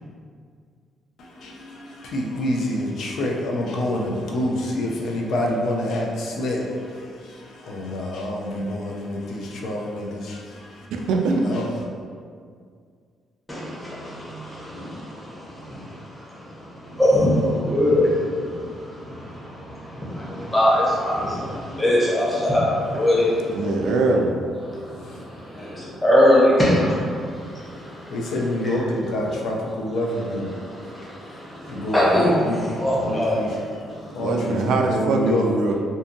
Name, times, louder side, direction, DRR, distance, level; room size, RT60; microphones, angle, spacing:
voice 1, 1.2-10.9 11.4-11.7 28.1-30.5 31.6-35.5, left 1 dB, 75° left, -1 dB, 0.4 m, -27 dB
voice 2, 11.1-11.4 23.5-24.3 34.2-35.7, right 3 dB, 80° right, 2 dB, 0.3 m, -22 dB
voice 3, 17.0-17.3 17.7-18.0 20.5-21.1 21.8-22.6 22.9-23.2 26.0-26.8 31.9-32.3 32.8-33.3, left 1 dB, 15° left, -8 dB, 0.9 m, -17 dB
2.6 x 2.5 x 2.6 m, 2.1 s
cardioid pair, 90°, 0 cm